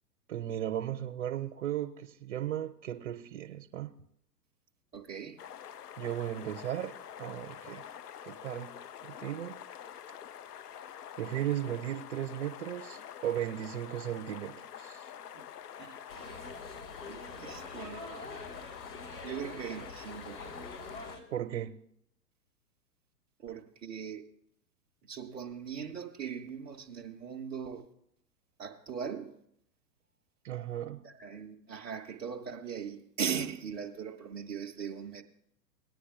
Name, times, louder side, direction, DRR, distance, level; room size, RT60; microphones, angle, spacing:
voice 1, 0.3-3.9 6.0-7.9 8.2-9.6 11.2-15.1 21.3-21.8 30.4-31.0, right 11 dB, 45° right, 0.7 m, -36 dB
voice 2, 4.9-5.4 15.3-15.4 15.8-16.0 17.1-18.1 19.2-20.4 23.4-24.2 25.0-27.9 28.6-29.3 31.0-35.2, right 7 dB, 10° right, 0.4 m, -39 dB
sound 1, 5.4-21.2, left 9 dB, 70° left, 0.6 m, -47 dB
sound 2, 16.1-21.2, left 2 dB, 90° left, 4.0 m, -46 dB
18.5 x 9.7 x 2.4 m
figure-of-eight pair, 105°, 49 cm